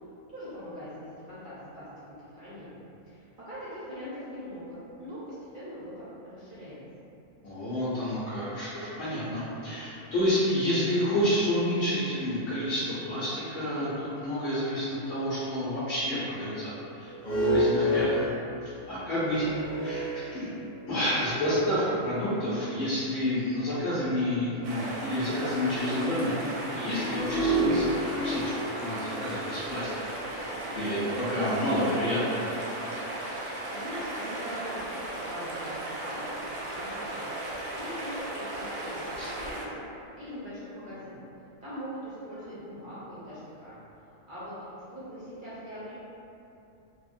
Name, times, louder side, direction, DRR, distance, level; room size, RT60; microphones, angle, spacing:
voice 1, 0.3-6.8 33.3-37.3 37.7-39.8 40.2-41.2 41.6-46.0, equal, 55° right, -11 dB, 0.5 m, -42 dB
voice 2, 7.4-16.7 17.0-18.2 18.6-19.5 19.8-20.5 20.9-26.3 26.7-29.9 30.8-32.2 39.2-39.3, left 1 dB, 75° left, -12 dB, 1.1 m, -29 dB
sound 1, 17.0-20.9 21.6-21.7 26.9-31.2, right 1 dB, 40° left, 0.6 m, -30 dB
sound 2, 24.6-39.6, right 1 dB, 90° right, 1.1 m, -36 dB
3.3 x 2.1 x 2.4 m, 2.8 s
omnidirectional pair, 1.5 m